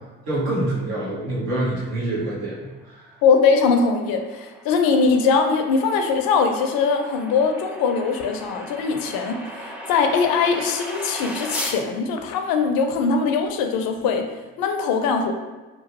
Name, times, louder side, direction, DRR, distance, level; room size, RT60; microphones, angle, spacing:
voice 1, 0.3-3.0, right 1 dB, 80° right, -7 dB, 1.2 m, -26 dB
sound 1, 3.1-11.8, equal, 5° right, 0.3 m, -37 dB
voice 2, 3.2-14.2 14.6-15.3, left 5 dB, 70° left, 5 dB, 0.5 m, -21 dB
2.9 x 2.2 x 2.9 m, 1.2 s
hypercardioid pair, 55°, 37 cm